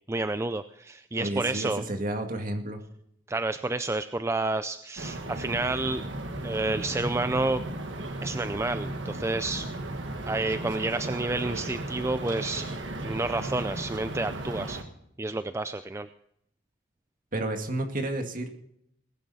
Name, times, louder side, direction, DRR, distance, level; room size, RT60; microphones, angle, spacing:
voice 1, 0.1-1.8 3.3-6.0 6.4-7.6 8.2-9.7 10.3-12.6 13.0-14.8 15.2-16.1, right 2 dB, 15° right, 11 dB, 0.4 m, -29 dB
voice 2, 1.2-2.8 17.3-18.5, right 1 dB, 45° right, 4 dB, 2.2 m, -31 dB
sound 1, 5.0-14.8, right 1 dB, 70° right, 1.9 m, -35 dB
20.0 x 10.5 x 4.2 m, 0.74 s
head